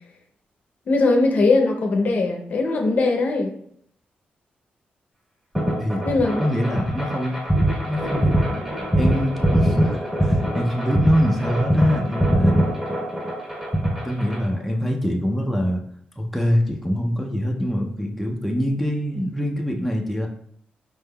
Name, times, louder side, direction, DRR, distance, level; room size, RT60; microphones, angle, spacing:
voice 1, 0.9-3.5 6.0-6.4, left 3 dB, 50° left, 2 dB, 0.6 m, -20 dB
sound 1, 5.5-14.5, right 1 dB, 15° right, 1.6 m, -22 dB
voice 2, 6.4-7.4 7.9-8.7 9.0-12.6 14.0-15.8 16.2-20.3, equal, ahead, 0 dB, 0.4 m, -24 dB
4.4 x 3.4 x 2.2 m, 0.68 s
wide cardioid pair, 130°, 3 cm